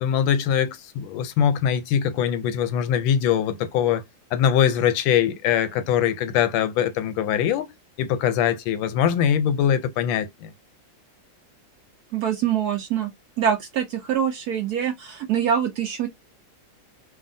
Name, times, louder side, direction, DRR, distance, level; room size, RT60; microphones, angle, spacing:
voice 1, 0.0-4.0 4.3-7.7 8.0-10.5, left 9 dB, 85° left, 1.4 m, -22 dB
voice 2, 12.1-13.1 13.4-16.1, right 9 dB, 70° right, 0.9 m, -24 dB
3.2 x 2.3 x 2.6 m
omnidirectional pair, 2.1 m